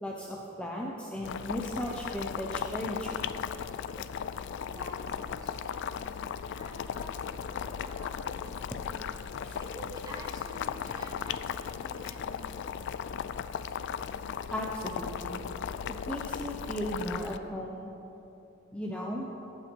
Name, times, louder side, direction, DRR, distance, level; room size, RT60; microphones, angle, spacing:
voice 1, 0.0-3.2 9.4-9.6 14.5-15.4 15.9-17.9 18.7-19.3, equal, 5° left, -2 dB, 0.7 m, -36 dB
Boiling, 1.2-17.4, left 7 dB, 60° left, 0.3 m, -37 dB
voice 2, 4.7-6.3 6.5-12.6, right 1 dB, 20° right, 0 dB, 1.4 m, -49 dB
17.5 x 6.4 x 4.6 m, 3.0 s
head